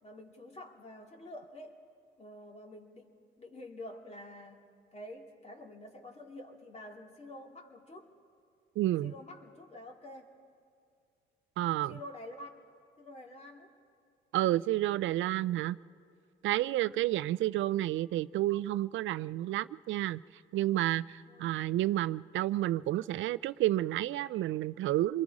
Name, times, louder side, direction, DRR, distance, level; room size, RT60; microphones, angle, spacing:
voice 1, 0.0-1.8 2.2-3.1 3.4-4.6 4.9-8.1 9.0-10.3 11.9-12.6 13.0-13.7 16.6-17.0 21.3-21.6, left 1 dB, 35° left, 2 dB, 2.6 m, -48 dB
voice 2, 8.8-9.1 11.6-12.0 14.3-15.8 16.4-20.2 20.5-25.2, right 15 dB, 75° right, 17 dB, 0.4 m, -30 dB
26.5 x 22.0 x 4.9 m, 2.2 s
cardioid pair, 90°, 20 cm